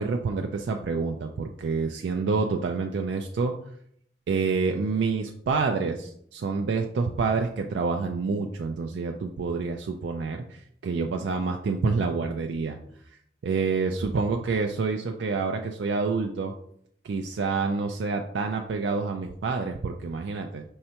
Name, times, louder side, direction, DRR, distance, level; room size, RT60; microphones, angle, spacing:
voice 1, 0.0-3.5 4.3-12.8 13.4-16.5 17.0-20.6, right 4 dB, 70° right, 3 dB, 0.4 m, -28 dB
5.5 x 3.2 x 2.8 m, 0.68 s
head